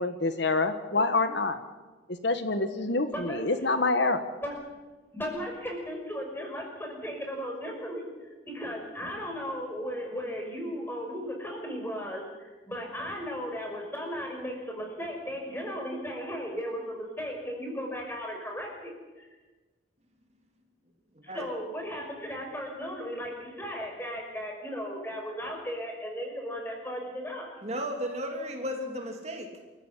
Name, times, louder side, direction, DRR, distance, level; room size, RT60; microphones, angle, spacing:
voice 1, 0.0-1.6 2.2-4.3, left 3 dB, 65° left, 9 dB, 1.5 m, -26 dB
voice 2, 3.1-3.4 4.4-4.5 5.1-19.3 21.2-27.5, equal, 10° left, 1 dB, 6.1 m, -36 dB
voice 3, 21.1-21.5 27.6-29.5, equal, 35° right, 3 dB, 3.1 m, -34 dB
27.5 x 15.0 x 10.0 m, 1.3 s
head